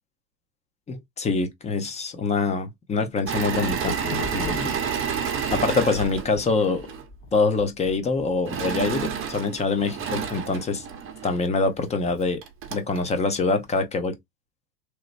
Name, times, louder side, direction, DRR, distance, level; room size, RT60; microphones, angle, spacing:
voice 1, 0.9-4.0 4.3-4.8 5.5-6.8 7.3-10.8 11.2-12.4 12.7-14.2, left 4 dB, 15° left, 0.6 m, -25 dB
sound 1, 3.2-5.6 5.9-8.3, left 4 dB, 45° left, 1.4 m, -37 dB
Engine / Mechanisms, 3.3-7.0 8.5-11.4 12.1-12.2 12.4-13.0, right 7 dB, 25° right, 0.9 m, -30 dB
3.1 x 2.9 x 2.5 m
hypercardioid pair, 110°, 50 cm